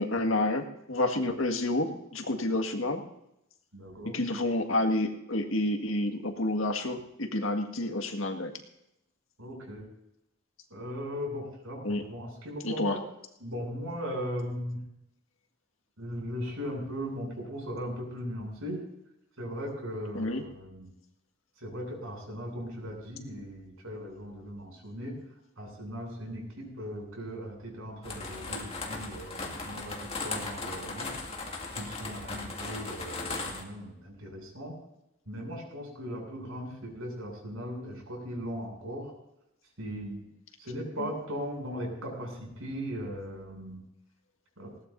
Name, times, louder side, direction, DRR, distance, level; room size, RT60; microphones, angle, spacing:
voice 1, 0.0-3.0 4.1-8.5 11.8-12.0 12.6-13.0 20.1-20.4 41.0-41.1, left 1 dB, 75° left, 5 dB, 1.9 m, -29 dB
voice 2, 3.7-4.2 9.4-9.8 10.7-13.0 13.4-14.8 16.0-18.8 19.4-20.9 21.6-25.2 25.6-31.1 31.7-34.8 35.3-39.1 39.8-40.3 40.6-43.8 44.6-44.7, equal, 90° right, -1 dB, 7.6 m, -38 dB
sound 1, 28.0-33.6, left 3 dB, 30° left, 2.2 m, -37 dB
20.0 x 18.0 x 2.7 m, 0.83 s
head